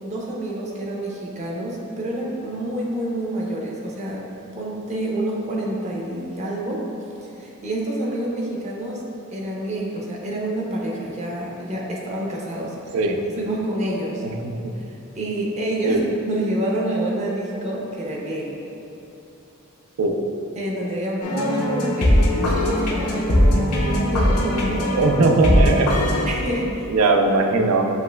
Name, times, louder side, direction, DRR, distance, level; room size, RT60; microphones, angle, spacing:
voice 1, 0.0-4.2 4.5-6.9 7.2-9.0 9.3-13.0 13.4-14.2 14.8-14.9 15.2-18.6 20.6-24.9 26.3-26.9, right 1 dB, 30° right, -3 dB, 0.7 m, -28 dB
sound 1, 21.2-26.3, left 1 dB, 90° left, 0.7 m, -20 dB
voice 2, 24.9-25.9 26.4-26.6 26.9-27.9, right 3 dB, 70° right, 3 dB, 0.4 m, -19 dB
7.3 x 3.0 x 2.2 m, 2.9 s
head